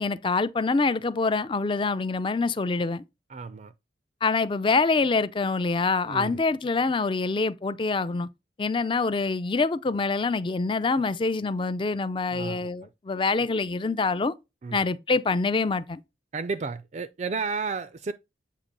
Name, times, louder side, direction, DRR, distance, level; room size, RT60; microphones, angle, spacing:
voice 1, 0.0-3.0 4.2-8.3 8.6-14.3 14.7-16.0, left 3 dB, 30° left, 0.4 m, -25 dB
voice 2, 3.3-3.7 6.1-6.4 12.3-12.7 14.6-14.9 16.3-18.1, right 4 dB, 40° right, 0.4 m, -32 dB
8.5 x 2.9 x 5.2 m
head